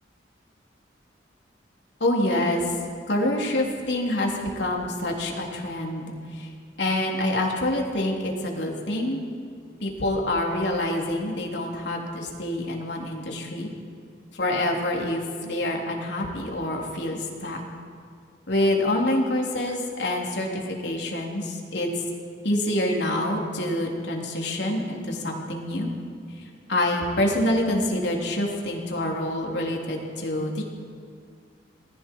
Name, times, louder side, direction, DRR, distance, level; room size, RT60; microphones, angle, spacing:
voice 1, 2.0-2.8 3.1-6.5 6.8-9.2 9.8-13.7 14.3-17.6 18.5-21.9 22.4-25.9 26.4-26.5 26.7-30.6, left 1 dB, 70° left, -1 dB, 3.5 m, -26 dB
28.0 x 20.0 x 4.7 m, 2.2 s
head